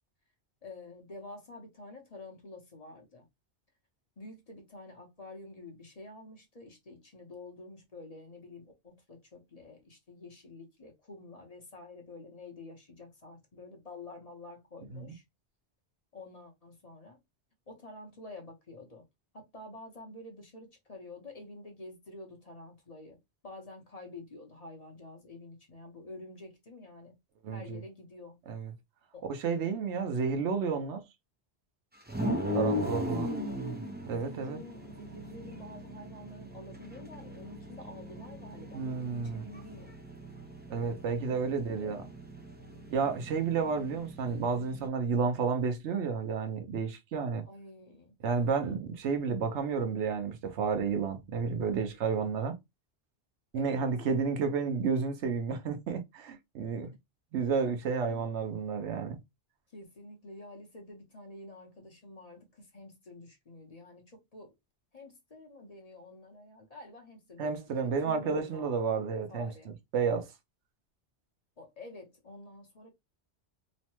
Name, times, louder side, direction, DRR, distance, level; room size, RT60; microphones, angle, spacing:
voice 1, 0.6-3.2 4.2-15.2 16.1-17.2 17.7-19.0 19.3-27.2 27.5-28.4 29.1-29.3 32.3-33.4 34.1-39.9 41.3-41.4 41.8-42.1 47.4-48.1 53.5-53.9 58.1-58.2 59.7-64.6 64.9-68.7 69.3-69.7 71.6-72.9, left 2 dB, 40° left, 0.8 m, -49 dB
voice 2, 27.4-27.8 28.5-28.7 29.2-31.0 32.5-33.3 34.0-34.6 38.7-39.4 40.7-42.0 42.9-47.5 48.2-52.6 53.5-57.0 57.3-59.2 67.4-70.3, right 5 dB, 90° right, 1.0 m, -31 dB
sound 1, 32.1-44.9, equal, 15° right, 0.4 m, -38 dB
3.1 x 2.1 x 2.9 m
omnidirectional pair, 1.1 m